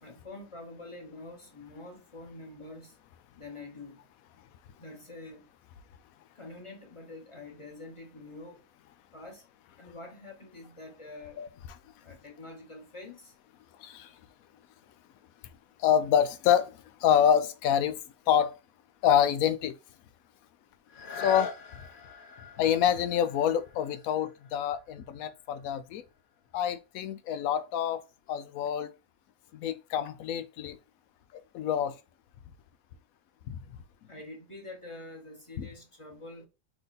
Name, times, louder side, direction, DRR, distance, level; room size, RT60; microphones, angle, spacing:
voice 1, 0.0-3.0 3.4-4.0 4.8-5.5 6.3-8.6 9.1-9.4 9.8-11.4 12.0-13.3 34.1-36.5, left 2 dB, 25° left, 1.0 m, -46 dB
voice 2, 15.8-16.7 17.0-18.0 18.3-18.5 19.0-19.7 21.2-21.5 22.6-26.0 26.5-28.0 28.3-28.9 29.5-30.8 31.5-31.9 33.5-33.6 35.6-35.7, left 9 dB, 80° left, 1.0 m, -26 dB
sound 1, 20.9-26.5 27.1-27.2, left 5 dB, 55° left, 0.6 m, -43 dB
3.8 x 3.2 x 4.0 m
omnidirectional pair, 1.5 m